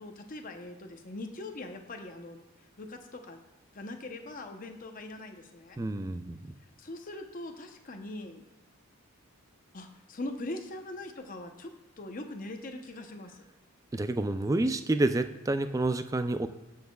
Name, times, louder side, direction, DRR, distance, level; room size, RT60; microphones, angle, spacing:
voice 1, 0.0-2.4 2.8-3.4 3.7-5.8 6.8-8.4 9.7-11.7 12.0-13.4, left 2 dB, 40° left, 4 dB, 0.8 m, -41 dB
voice 2, 5.8-6.5 13.9-16.5, right 2 dB, 15° right, 10 dB, 0.3 m, -29 dB
18.5 x 6.4 x 2.3 m, 1.1 s
head